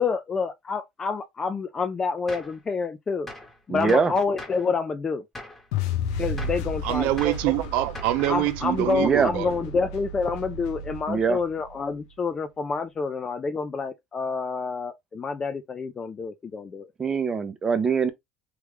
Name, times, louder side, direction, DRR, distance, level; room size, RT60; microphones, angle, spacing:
voice 1, 0.0-3.3 3.7-5.2 6.2-7.1 8.3-16.9, left 5 dB, 25° left, 0.4 m, -28 dB
Gunshot gunfire, 2.3-2.6 3.3-3.6 3.9-4.7 5.3-5.7 6.4-6.7 7.2-7.5 7.9-8.5, left 1 dB, 10° left, 1.1 m, -41 dB
voice 2, 3.7-4.1 9.0-9.3 11.1-11.4 17.0-18.1, right 5 dB, 25° right, 0.6 m, -22 dB
sound 1, 5.7-11.9, left 3 dB, 90° left, 0.6 m, -33 dB
voice 3, 6.8-9.5, right 14 dB, 70° right, 0.4 m, -25 dB
3.1 x 2.3 x 3.4 m
supercardioid pair, 115°, 2 cm